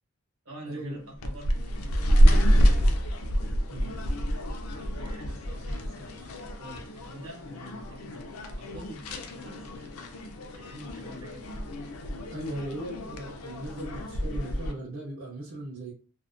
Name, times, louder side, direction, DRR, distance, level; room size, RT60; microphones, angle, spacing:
voice 1, 0.4-2.8 4.7-8.3 8.6-10.1 10.5-11.5 12.5-12.6, equal, 70° right, -1 dB, 0.9 m, -46 dB
sound 1, 1.1-14.7, equal, 75° left, 0.4 m, -27 dB
voice 2, 3.7-4.0 12.3-15.9, right 1 dB, 55° right, -5 dB, 0.5 m, -38 dB
2.5 x 2.0 x 2.4 m, 0.39 s
head